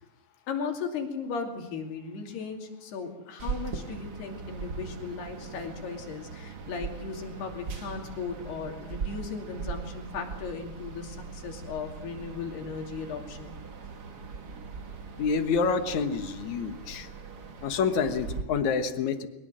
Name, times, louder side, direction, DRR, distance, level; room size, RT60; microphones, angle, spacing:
voice 1, 0.5-13.6, left 5 dB, 85° left, 3 dB, 4.7 m, -36 dB
sound 1, 3.4-18.4, right 5 dB, 75° right, 0.9 m, -40 dB
voice 2, 15.2-17.1 17.6-19.3, left 5 dB, 60° left, 9 dB, 2.3 m, -27 dB
22.0 x 21.0 x 7.6 m, 0.92 s
omnidirectional pair, 4.5 m